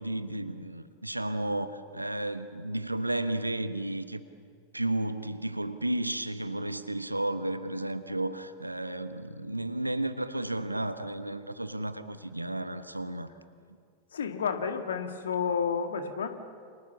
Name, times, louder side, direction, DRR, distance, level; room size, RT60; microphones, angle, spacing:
voice 1, 0.0-4.2 4.7-13.3, right 1 dB, 85° right, 11 dB, 1.3 m, -33 dB
voice 2, 14.1-16.3, left 6 dB, 65° left, 7 dB, 2.1 m, -30 dB
30.0 x 27.5 x 7.1 m, 2.2 s
figure-of-eight pair, 90°, 0 cm